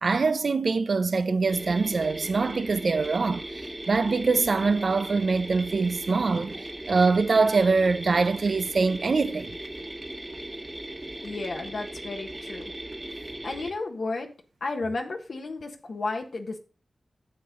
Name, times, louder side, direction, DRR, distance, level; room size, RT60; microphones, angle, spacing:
voice 1, 0.0-9.6, right 4 dB, 65° right, 0.7 m, -24 dB
sound 1, 1.5-13.7, right 1 dB, 20° right, 1.5 m, -38 dB
voice 2, 11.2-12.7 13.4-14.3 14.6-16.6, left 3 dB, 75° left, 1.6 m, -33 dB
10.0 x 6.9 x 3.8 m
cardioid pair, 55°, 0 cm